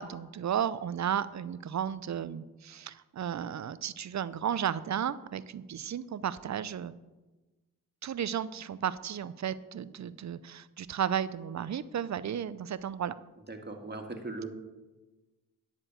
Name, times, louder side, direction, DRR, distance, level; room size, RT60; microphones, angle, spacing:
voice 1, 0.0-7.0 8.0-13.1, right 9 dB, 50° right, 16 dB, 0.6 m, -34 dB
voice 2, 13.5-14.5, right 3 dB, 25° right, 4 dB, 1.9 m, -39 dB
10.0 x 4.5 x 7.6 m, 1.1 s
supercardioid pair, 45°, 37 cm